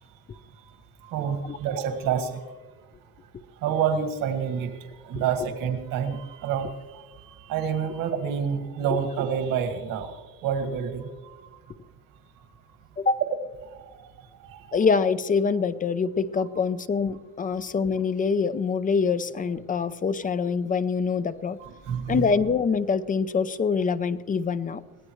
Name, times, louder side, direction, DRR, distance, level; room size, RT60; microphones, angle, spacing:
voice 1, 1.0-2.4 3.6-4.7 5.0-11.6 13.7-13.8 14.4-14.6 17.4-17.6 21.6-22.3, right 7 dB, 65° right, 5 dB, 2.1 m, -28 dB
voice 2, 5.2-5.5 8.9-9.0 13.0-13.2 14.7-21.6 22.1-24.8, left 5 dB, 25° left, 13 dB, 0.6 m, -25 dB
23.0 x 17.0 x 3.1 m, 1.3 s
cardioid pair, 125°, 35 cm